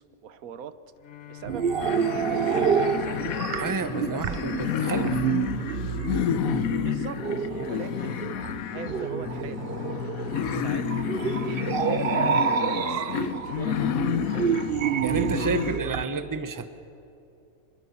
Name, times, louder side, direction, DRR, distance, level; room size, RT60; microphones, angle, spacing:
voice 1, 0.2-0.8 1.3-3.2 4.1-4.4 6.8-9.7 10.0-12.4 12.9-14.6 15.2-15.7, right 8 dB, 85° right, 13 dB, 1.3 m, -42 dB
Bowed string instrument, 0.9-5.3, left 12 dB, 60° left, 1.1 m, -43 dB
sound 1, 1.4-16.0, right 7 dB, 50° right, 0.8 m, -28 dB
sound 2, 1.8-15.8, left 9 dB, 80° left, 1.2 m, -30 dB
voice 2, 3.6-5.2 15.0-16.7, right 4 dB, 15° right, 10 dB, 0.8 m, -30 dB
25.0 x 21.5 x 7.0 m, 2.7 s
omnidirectional pair, 1.5 m